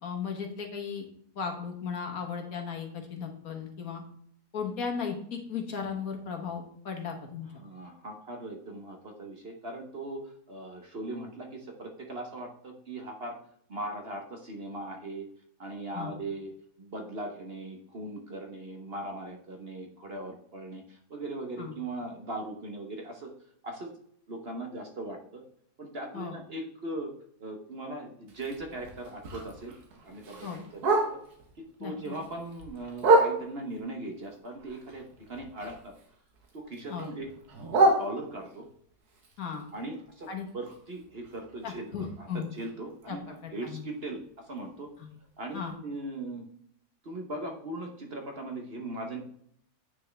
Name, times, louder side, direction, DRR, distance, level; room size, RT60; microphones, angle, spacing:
voice 1, 0.0-1.1 1.3-4.0 4.5-7.5 15.9-16.1 21.6-21.7 26.1-26.4 30.4-30.6 31.8-32.1 36.9-37.1 39.4-39.7 40.3-40.5 41.6-42.5 43.1-43.8 45.0-45.1 45.5-45.7, left 6 dB, 65° left, 2 dB, 1.7 m, -36 dB
voice 2, 7.6-13.4 13.7-15.3 15.6-16.5 16.8-23.3 23.6-23.9 24.3-25.4 25.8-27.1 27.4-29.7 30.0-30.5 31.1-31.2 31.8-35.9 36.5-37.3 37.8-38.7 39.7-40.3 40.5-41.9 42.2-44.9 45.4-46.4 47.0-49.2, right 2 dB, 45° right, 2 dB, 1.2 m, -39 dB
Bark, 28.3-31.5 31.9-33.8 34.2-36.1 36.3-38.7 39.1-43.0 43.4-43.5 43.8-44.1 44.6-44.7 45.0-45.1 45.6-45.7, right 2 dB, 75° right, 1.8 m, -30 dB
9.1 x 6.0 x 3.4 m, 0.66 s
omnidirectional pair, 1.7 m